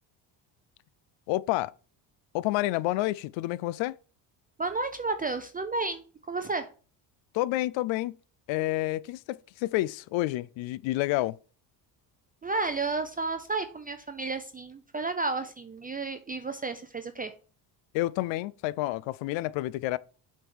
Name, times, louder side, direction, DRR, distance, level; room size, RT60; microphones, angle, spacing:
voice 1, 1.3-1.7 2.3-4.0 7.3-8.2 8.5-11.4 17.9-20.0, left 17 dB, 70° left, 0.5 m, -29 dB
voice 2, 4.6-6.7 12.4-17.3, right 3 dB, 20° right, 0.5 m, -32 dB
7.4 x 3.6 x 4.7 m
cardioid pair, 105°, 47 cm